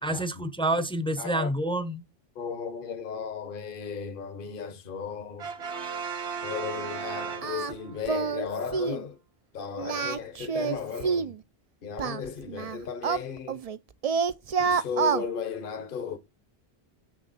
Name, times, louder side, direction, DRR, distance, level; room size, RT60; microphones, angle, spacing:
voice 1, 0.0-2.0, right 1 dB, 5° left, 0.6 m, -28 dB
voice 2, 1.2-1.6 2.3-5.5 6.4-9.2 9.5-11.3 11.8-13.6 14.6-16.2, left 6 dB, 55° left, 1.1 m, -35 dB
Brass instrument, 5.4-8.0, right 6 dB, 90° right, 1.3 m, -35 dB
Singing, 7.4-7.7 8.1-8.5 8.7-9.0 9.8-11.4 12.0-13.8 14.0-15.2, right 6 dB, 45° right, 0.5 m, -28 dB
6.7 x 6.4 x 4.0 m
omnidirectional pair, 1.1 m